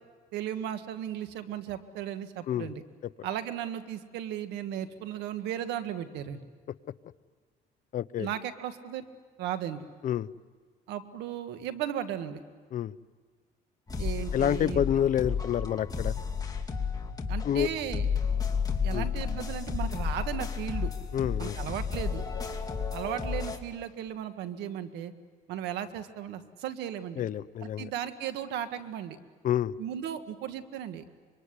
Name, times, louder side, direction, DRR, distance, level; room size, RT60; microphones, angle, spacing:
voice 1, 0.3-2.8 3.2-6.4 8.2-9.1 9.4-9.8 10.9-12.4 14.0-14.8 17.3-18.1 18.8-20.9 21.4-22.2 22.9-25.1 25.5-27.2 27.6-29.2 29.8-31.0, right 10 dB, 85° right, 10 dB, 1.7 m, -36 dB
voice 2, 7.9-8.3 10.0-10.3 12.7-12.9 14.3-16.1 17.4-17.7 18.9-19.1 21.1-21.6 27.2-27.9 29.4-29.7, left 10 dB, 50° left, 14 dB, 0.7 m, -28 dB
sound 1, 13.9-23.6, left 6 dB, 20° left, 2.7 m, -32 dB
26.0 x 23.5 x 9.8 m, 1.5 s
cardioid pair, 110°, 17 cm